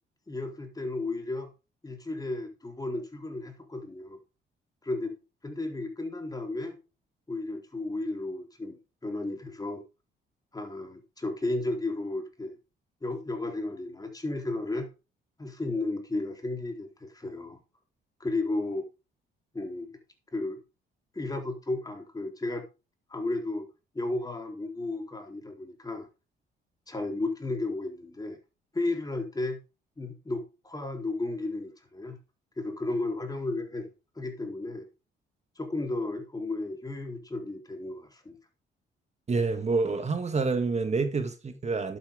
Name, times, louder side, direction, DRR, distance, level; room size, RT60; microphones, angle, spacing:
voice 1, 0.3-1.5 1.8-4.2 4.8-5.2 5.4-6.8 7.3-8.8 9.0-9.8 10.5-12.6 13.0-14.9 15.4-17.6 18.2-18.8 19.5-19.9 20.3-20.6 21.1-22.6 23.1-23.7 23.9-26.1 26.9-28.4 28.7-29.6 30.0-32.2 32.6-33.9 34.2-34.9 35.6-38.4, left 2 dB, 20° left, 3.9 m, -33 dB
voice 2, 39.3-42.0, right 4 dB, 35° right, 1.8 m, -27 dB
11.5 x 8.9 x 3.7 m
cardioid pair, 90°, 20 cm